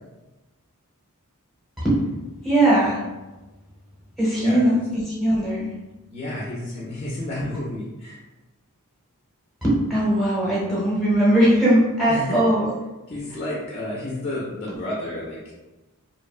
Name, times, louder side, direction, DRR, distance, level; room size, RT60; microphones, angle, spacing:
voice 1, 2.4-3.0 4.2-5.7 7.4-7.5 9.6-12.7 14.7-14.8, right 1 dB, ahead, -7 dB, 0.8 m, -20 dB
voice 2, 4.4-4.8 6.1-8.2 12.1-12.4 13.1-15.5, left 1 dB, 30° left, -5 dB, 0.4 m, -31 dB
2.7 x 2.1 x 2.3 m, 1.1 s
head